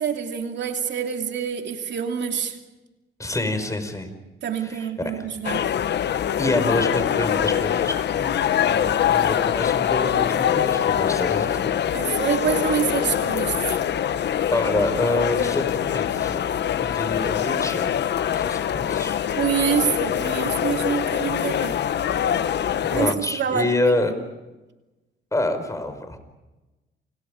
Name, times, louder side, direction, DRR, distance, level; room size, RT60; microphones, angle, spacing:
voice 1, 0.0-2.6 4.4-5.7 11.9-13.8 19.4-21.8 22.9-24.0, right 8 dB, 60° right, 2.7 m, -26 dB
voice 2, 3.2-4.1 4.6-5.2 6.0-11.7 14.5-16.4 16.8-17.9 18.3-19.2 22.9-24.1 25.3-26.2, left 2 dB, 15° left, 5.1 m, -27 dB
sound 1, 5.4-23.1, left 9 dB, 60° left, 1.0 m, -24 dB
29.5 x 28.0 x 5.1 m
cardioid pair, 90°, 20 cm